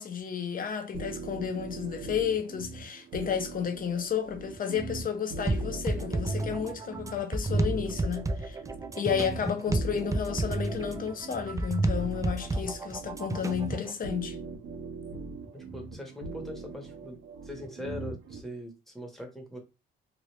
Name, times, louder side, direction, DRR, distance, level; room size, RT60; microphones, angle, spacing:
voice 1, 0.0-8.6 9.0-14.4, left 7 dB, 45° left, 0.8 m, -32 dB
sound 1, 0.9-18.4, right 4 dB, 75° right, 1.0 m, -41 dB
sound 2, 5.5-13.9, right 2 dB, 15° right, 0.4 m, -31 dB
voice 2, 15.5-17.2 17.4-19.6, left 1 dB, ahead, 1.2 m, -41 dB
3.0 x 2.5 x 3.1 m
cardioid pair, 90°, 20 cm